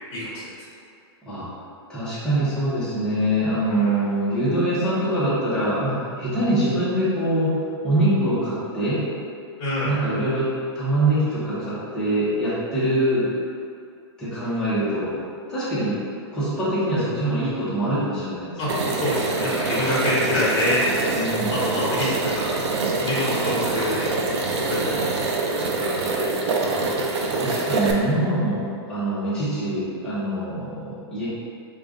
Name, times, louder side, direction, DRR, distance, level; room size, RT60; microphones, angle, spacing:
voice 1, 1.9-9.0 9.8-13.3 14.2-15.1 15.5-16.0 16.3-18.8 21.1-21.6 26.6-26.8 27.3-31.3, right 1 dB, 5° left, -12 dB, 0.9 m, -24 dB
voice 2, 3.7-4.0 9.6-9.9 18.6-18.7 19.0-20.8 21.5-22.5 23.0-24.1 24.6-25.3 25.6-26.2, left 1 dB, 25° left, -10 dB, 1.3 m, -26 dB
sound 1, 18.7-27.9, right 3 dB, 85° right, 0.5 m, -25 dB
4.9 x 2.4 x 2.4 m, 2.4 s
supercardioid pair, 165°, 14 cm